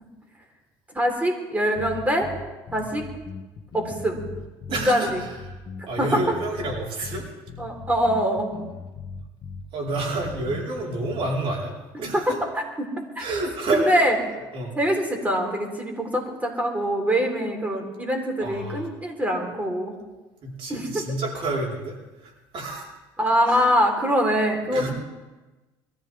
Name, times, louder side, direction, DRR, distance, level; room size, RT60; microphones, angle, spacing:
voice 1, 0.9-2.3 2.7-3.1 3.7-4.3 4.7-5.2 6.0-6.3 7.6-8.5 11.9-12.0 13.2-13.3 13.7-14.2 14.8-20.0 20.7-21.0 23.2-24.9, equal, 15° right, 2 dB, 3.9 m, -23 dB
sound 1, 1.8-11.3, left 4 dB, 45° left, 1.7 m, -39 dB
voice 2, 4.7-5.5 5.9-7.3 9.7-12.4 13.2-14.0 14.5-14.7 18.4-18.8 20.4-22.9 23.5-23.7 24.7-24.9, right 2 dB, 60° right, -2 dB, 4.6 m, -29 dB
22.5 x 14.0 x 3.6 m, 1.1 s
supercardioid pair, 90°, 10 cm